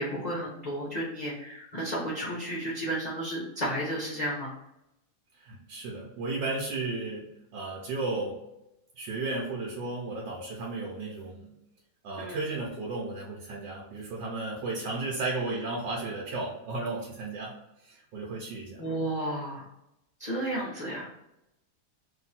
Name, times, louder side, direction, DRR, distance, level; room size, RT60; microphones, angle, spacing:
voice 1, 0.0-4.5 12.2-12.4 18.8-19.7 20.2-21.1, right 1 dB, 50° left, -5 dB, 0.5 m, -32 dB
voice 2, 5.4-8.4 9.0-11.5 12.0-18.8, right 3 dB, 80° right, -3 dB, 1.4 m, -34 dB
3.0 x 2.8 x 4.1 m, 0.87 s
omnidirectional pair, 2.0 m